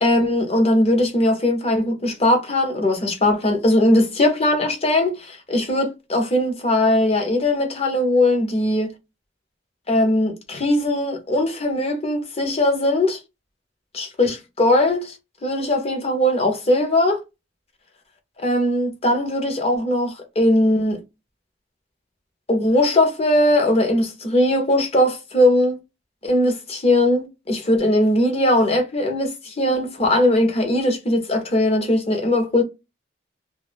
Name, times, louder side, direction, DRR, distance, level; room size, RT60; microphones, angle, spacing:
voice 1, 0.0-8.9 9.9-13.2 13.9-15.1 15.4-17.2 18.4-21.0 22.5-25.8 26.2-32.6, left 1 dB, 35° left, 0.8 m, -19 dB
2.3 x 2.1 x 3.3 m
head